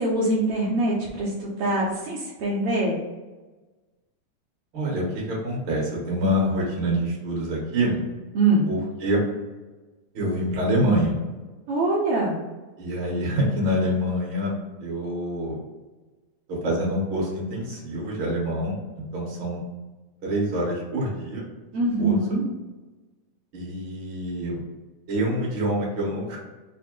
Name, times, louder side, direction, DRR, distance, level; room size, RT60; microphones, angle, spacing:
voice 1, 0.0-3.0 8.3-8.7 11.7-12.4 21.7-22.4, right 2 dB, 75° right, -5 dB, 1.3 m, -23 dB
voice 2, 4.7-8.0 8.6-9.2 10.1-11.2 12.8-14.5 14.8-15.6 16.6-19.6 20.2-21.4 22.0-22.1 23.5-24.6 25.1-26.4, equal, 50° right, -4 dB, 1.6 m, -26 dB
5.7 x 2.0 x 3.6 m, 1.2 s
omnidirectional pair, 3.4 m